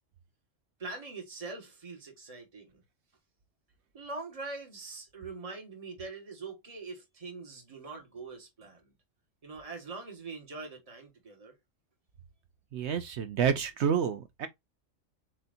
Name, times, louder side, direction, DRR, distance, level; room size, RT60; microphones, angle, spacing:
voice 1, 0.8-2.8 3.9-8.9 9.4-11.5, right 3 dB, 30° right, 1.5 m, -43 dB
voice 2, 12.7-14.5, right 7 dB, 65° right, 0.9 m, -29 dB
7.6 x 2.8 x 2.5 m
omnidirectional pair, 1.3 m